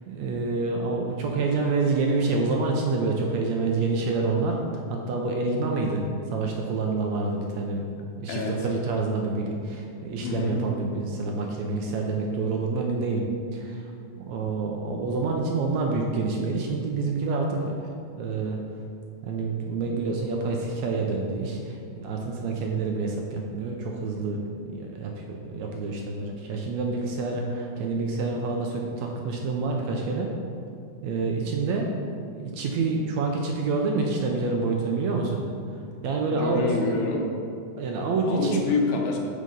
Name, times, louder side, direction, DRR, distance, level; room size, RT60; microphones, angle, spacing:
voice 1, 0.1-7.9 8.2-13.2 13.5-13.9 14.3-17.9 18.2-18.6 19.2-24.4 24.7-30.3 31.0-31.9 32.3-35.4 36.0-36.6 37.8-38.6, right 3 dB, 75° right, 1 dB, 1.8 m, -27 dB
voice 2, 8.3-8.7 10.2-10.6 36.3-37.3 38.3-39.2, left 3 dB, 75° left, 1 dB, 2.4 m, -27 dB
6.6 x 6.5 x 5.4 m, 2.5 s
omnidirectional pair, 3.7 m